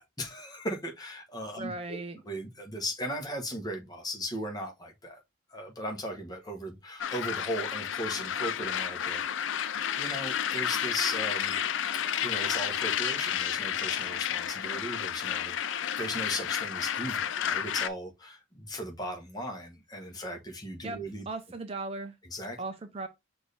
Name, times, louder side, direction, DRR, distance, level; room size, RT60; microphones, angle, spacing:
voice 1, 0.0-2.0 2.2-5.2 5.5-11.6 12.2-21.3 22.3-22.6, equal, 20° left, 1.0 m, -37 dB
voice 2, 1.6-2.2 20.8-21.0 21.3-22.1 22.6-23.1, right 3 dB, 30° right, 0.5 m, -37 dB
sound 1, 7.0-17.9, left 9 dB, 75° left, 0.4 m, -31 dB
6.3 x 2.6 x 3.2 m
head